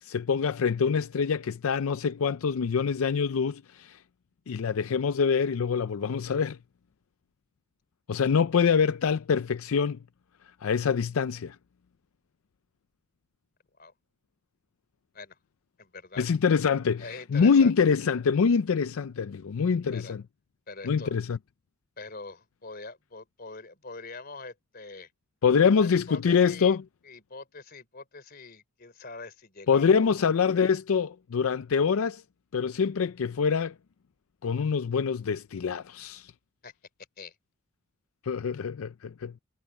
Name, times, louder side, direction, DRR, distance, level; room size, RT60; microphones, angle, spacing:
voice 1, 0.0-4.0 4.5-6.6 8.1-10.0 10.6-11.6 16.2-20.2 20.8-21.4 25.4-26.8 29.7-32.2 32.5-33.7 34.4-36.3 38.2-39.3, left 6 dB, 80° left, 0.4 m, -25 dB
voice 2, 15.8-16.3 17.0-17.7 19.9-20.1 20.7-21.1 22.0-25.1 25.8-26.8 27.0-30.1 36.6-36.7 37.2-37.4, left 3 dB, 45° left, 3.7 m, -44 dB
head